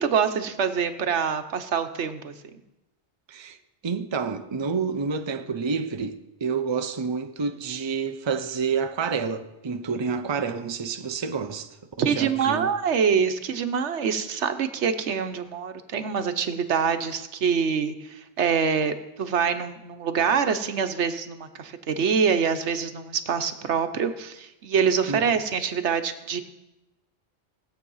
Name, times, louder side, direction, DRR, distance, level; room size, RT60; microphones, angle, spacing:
voice 1, 0.0-2.3 12.0-26.4, right 6 dB, 80° right, 1.2 m, -25 dB
voice 2, 3.8-12.7 25.1-25.4, right 5 dB, 30° right, 0.6 m, -29 dB
16.5 x 8.2 x 5.5 m
omnidirectional pair, 1.2 m